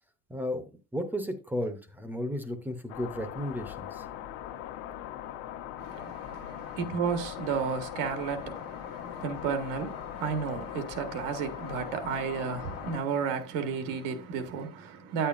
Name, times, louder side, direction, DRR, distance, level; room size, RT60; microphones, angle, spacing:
voice 1, 0.3-4.0, equal, 5° right, 0.6 m, -34 dB
sound 1, 2.9-13.0, left 11 dB, 75° left, 1.1 m, -40 dB
voice 2, 5.8-15.3, right 6 dB, 85° right, 1.5 m, -33 dB
9.2 x 8.7 x 2.5 m
cardioid pair, 180°, 41 cm